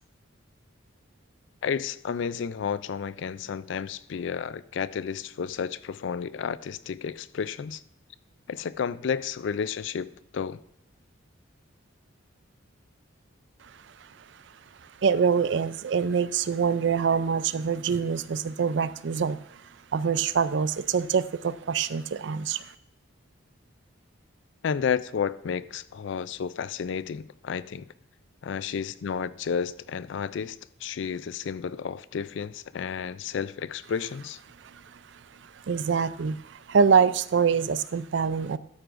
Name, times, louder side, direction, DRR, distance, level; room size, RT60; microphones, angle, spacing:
voice 1, 1.6-7.8 8.5-10.6 24.6-27.9 28.4-34.4, left 6 dB, 65° left, 0.3 m, -31 dB
voice 2, 13.6-14.4 14.8-22.7 34.6-38.6, right 6 dB, 60° right, 0.4 m, -26 dB
12.5 x 9.5 x 2.5 m
head